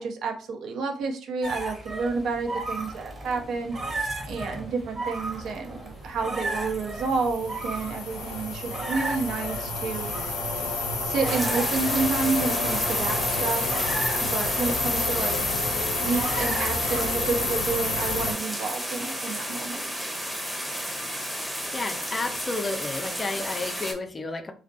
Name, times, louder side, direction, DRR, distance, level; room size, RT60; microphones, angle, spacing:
voice 1, 0.0-10.1 11.0-13.7 14.2-15.4 16.0-19.9, right 4 dB, 65° right, 3 dB, 0.5 m, -30 dB
sound 1, 1.4-17.5, right 2 dB, 35° right, 1.0 m, -36 dB
sound 2, 6.1-18.3, left 3 dB, 90° left, 0.5 m, -29 dB
sound 3, 11.2-23.9, equal, 5° right, 0.7 m, -33 dB
voice 2, 21.7-24.5, left 3 dB, 35° left, 7 dB, 0.4 m, -31 dB
2.5 x 2.1 x 2.5 m, 0.39 s
hypercardioid pair, 50°, 0 cm